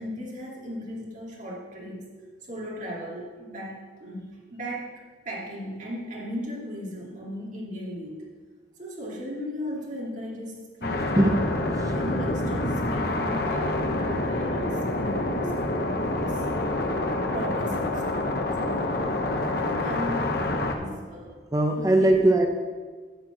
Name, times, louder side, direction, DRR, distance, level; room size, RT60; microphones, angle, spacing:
voice 1, 0.0-2.1 2.5-8.3 8.8-11.3 11.9-16.4 16.9-18.2 18.6-21.5 21.8-22.2, equal, 45° right, -4 dB, 2.4 m, -37 dB
sound 1, 10.8-20.8, left 2 dB, 60° left, 1.0 m, -27 dB
voice 2, 21.5-22.5, right 1 dB, 20° right, 3 dB, 0.7 m, -20 dB
10.5 x 4.5 x 7.6 m, 1.5 s
head